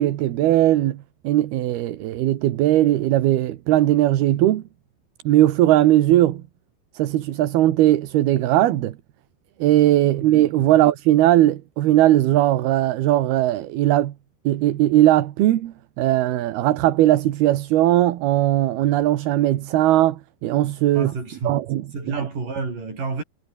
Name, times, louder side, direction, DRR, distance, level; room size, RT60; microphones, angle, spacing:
voice 1, 0.0-4.6 5.3-6.4 6.9-8.9 9.6-14.1 14.4-21.1 21.4-21.8 22.1-22.3, right 14 dB, 80° right, 3.3 m, -19 dB
voice 2, 20.9-21.6 21.9-23.2, right 4 dB, 55° right, 8.8 m, -29 dB
omnidirectional pair, 4.5 m